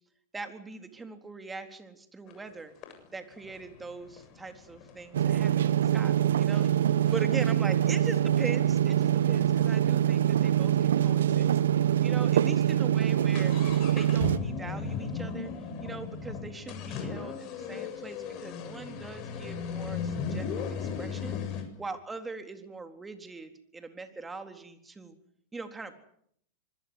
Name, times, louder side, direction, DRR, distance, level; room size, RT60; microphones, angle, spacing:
voice 1, 0.3-2.7 3.1-11.6 12.0-15.5 15.8-25.2 25.5-26.0, right 3 dB, 15° right, 7 dB, 3.9 m, -41 dB
sound 1, 2.3-2.4 2.8-5.5 6.1-6.2 6.5-6.7 7.1-10.8 11.0-11.1 11.3-11.4 12.0-12.2 12.5-21.6, left 6 dB, 45° left, 7.6 m, -37 dB
sound 2, 5.1-14.4, right 10 dB, 80° right, 1.1 m, -24 dB
26.0 x 21.5 x 8.2 m, 0.69 s
hypercardioid pair, 105°, 0 cm